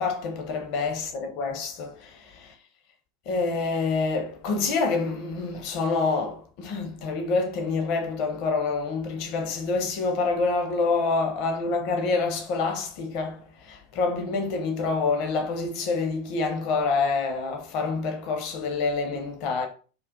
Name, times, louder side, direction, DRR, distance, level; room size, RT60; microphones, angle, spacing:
voice 1, 0.0-2.5 3.3-19.7, left 4 dB, 45° left, 0.6 m, -27 dB
2.4 x 2.3 x 3.7 m
figure-of-eight pair, 85°, 0 cm